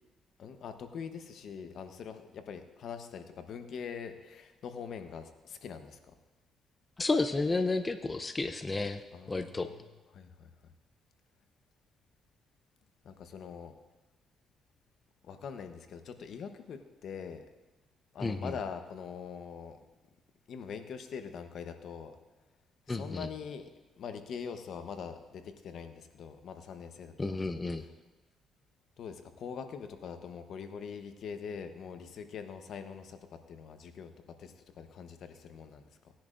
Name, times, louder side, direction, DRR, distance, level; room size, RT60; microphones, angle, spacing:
voice 1, 0.4-6.0 9.1-9.8 10.1-10.5 13.0-13.7 15.2-17.4 18.1-19.8 20.5-22.1 22.9-23.7 24.0-27.4 29.0-34.1 34.4-36.1, left 6 dB, 70° left, 8 dB, 0.9 m, -43 dB
voice 2, 7.0-9.7 18.2-18.5 22.9-23.3 27.2-27.8, left 3 dB, 25° left, 9 dB, 0.6 m, -32 dB
18.5 x 10.5 x 2.5 m, 1.1 s
cardioid pair, 90°, 0 cm